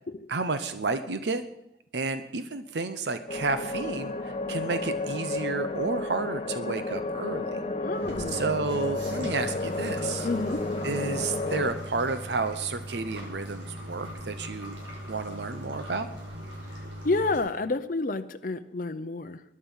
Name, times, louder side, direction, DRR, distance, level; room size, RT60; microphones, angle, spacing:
voice 1, 0.3-1.4 1.9-7.5 8.3-10.3 10.8-14.8 15.1-16.1, right 3 dB, 70° right, 10 dB, 0.8 m, -31 dB
sound 1, 3.3-11.7, left 2 dB, 30° left, 0.9 m, -32 dB
voice 2, 7.8-8.5 10.2-10.7 16.7-19.4, left 3 dB, 45° left, 8 dB, 0.6 m, -30 dB
sound 2, 8.0-17.4, equal, 90° right, 6.0 m, -40 dB
21.0 x 11.0 x 5.6 m, 0.86 s
head